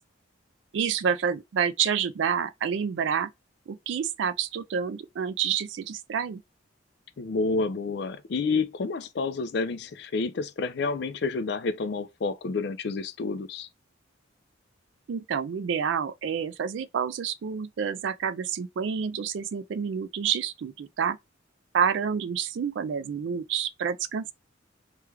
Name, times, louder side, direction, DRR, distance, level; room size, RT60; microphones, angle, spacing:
voice 1, 0.7-3.3 3.7-6.4 15.1-21.2 21.7-24.3, right 7 dB, 65° right, 0.3 m, -28 dB
voice 2, 7.2-13.7, left 4 dB, 55° left, 0.4 m, -29 dB
3.2 x 2.3 x 3.1 m
head